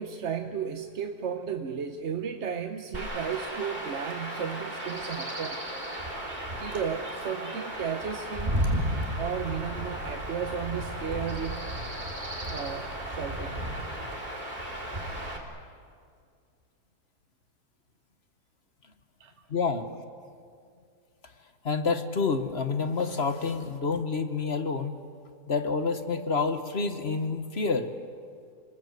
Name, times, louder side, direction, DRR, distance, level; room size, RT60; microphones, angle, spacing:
voice 1, 0.0-5.6 6.6-8.6 9.2-11.7 12.4-13.6 19.2-19.3, right 7 dB, 50° right, 6 dB, 1.1 m, -34 dB
Chirp tweet / Wind / Stream, 2.9-15.4, right 1 dB, 25° right, 3.5 m, -34 dB
voice 2, 19.5-19.8 21.6-24.9 25.5-27.9, left 4 dB, 45° left, 9 dB, 1.4 m, -28 dB
30.0 x 21.0 x 8.2 m, 2.2 s
omnidirectional pair, 1.7 m